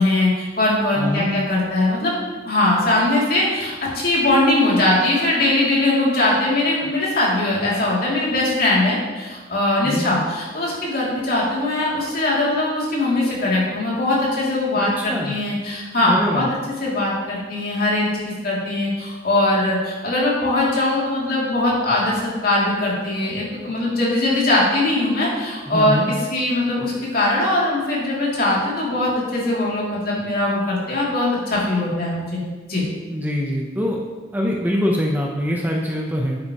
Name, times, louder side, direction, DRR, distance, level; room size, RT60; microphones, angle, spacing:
voice 1, 0.0-2.1 2.5-16.5 16.8-18.1 18.4-32.4 32.7-32.8, left 2 dB, 50° left, -5 dB, 2.9 m, -21 dB
voice 2, 1.0-1.3 9.8-10.0 14.8-15.4 16.0-16.5 25.7-26.1 33.1-34.0 34.3-36.4, equal, 10° right, -1 dB, 0.8 m, -23 dB
10.0 x 8.6 x 3.1 m, 1.3 s
head